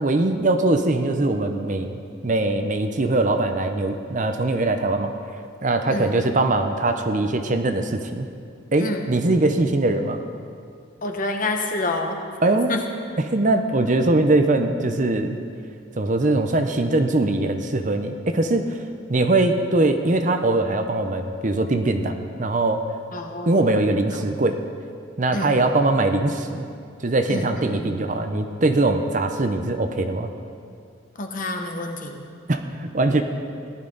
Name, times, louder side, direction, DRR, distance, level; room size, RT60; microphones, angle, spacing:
voice 1, 0.0-5.1 5.6-8.3 8.7-10.2 12.4-12.7 13.2-15.4 16.0-18.8 19.1-22.8 23.5-24.6 25.2-26.7 27.0-30.3 32.5-33.2, right 2 dB, 40° right, 7 dB, 0.6 m, -21 dB
voice 2, 8.8-9.1 11.0-12.2 12.7-12.8 23.1-23.7 24.1-24.4 25.3-25.6 27.3-28.0 31.2-32.3, left 2 dB, 40° left, 3 dB, 1.1 m, -28 dB
16.5 x 12.0 x 4.0 m, 2.3 s
head